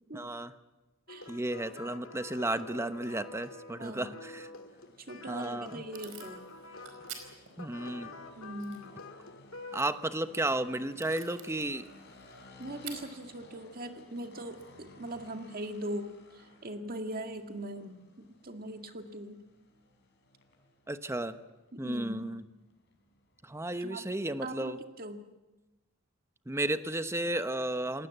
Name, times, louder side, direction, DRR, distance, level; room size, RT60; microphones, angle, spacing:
voice 1, 0.1-0.5 1.3-4.5 5.3-5.8 7.6-8.1 9.7-11.9 20.9-21.4 21.8-22.4 23.4-24.8 26.5-28.1, right 1 dB, 15° right, 10 dB, 1.0 m, -33 dB
sound 1, 1.1-9.8, left 3 dB, 75° left, 2.3 m, -47 dB
voice 2, 3.7-4.2 5.1-6.4 8.4-9.0 12.6-19.4 21.7-22.4 23.8-24.0 24.4-25.2, right 1 dB, 45° right, 5 dB, 2.1 m, -41 dB
sound 2, 4.6-24.5, left 2 dB, 55° left, 5.0 m, -58 dB
Packing tape duct tape / Tearing, 5.0-15.8, right 7 dB, 70° right, 4.6 m, -53 dB
27.0 x 19.5 x 8.1 m, 1.1 s
head